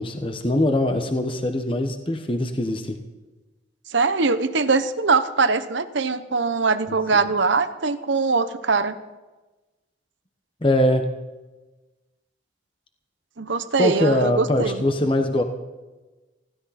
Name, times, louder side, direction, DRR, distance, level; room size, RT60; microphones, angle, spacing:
voice 1, 0.0-3.0 10.6-11.1 13.7-15.4, left 1 dB, 25° left, 5 dB, 1.2 m, -22 dB
voice 2, 3.9-8.9 13.4-14.8, right 4 dB, 75° right, 10 dB, 1.0 m, -22 dB
20.5 x 16.0 x 4.3 m, 1.1 s
head